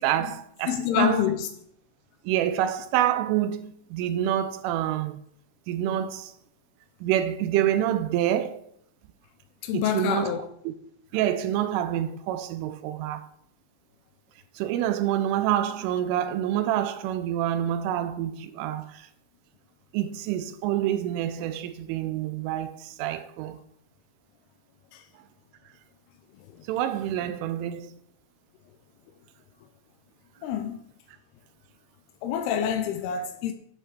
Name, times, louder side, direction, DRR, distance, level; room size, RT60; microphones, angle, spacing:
voice 1, 0.0-1.2 2.3-5.2 5.7-6.3 7.0-8.6 9.7-10.3 10.7-10.8 11.1-13.3 14.6-19.1 19.9-23.6 26.7-27.9, right 11 dB, 85° right, 3.1 m, -27 dB
voice 2, 0.7-1.5 9.6-10.4 24.9-25.0 26.6-26.7 30.4-30.8 32.2-33.5, left 9 dB, 80° left, 2.3 m, -27 dB
11.0 x 7.9 x 6.7 m
omnidirectional pair, 5.7 m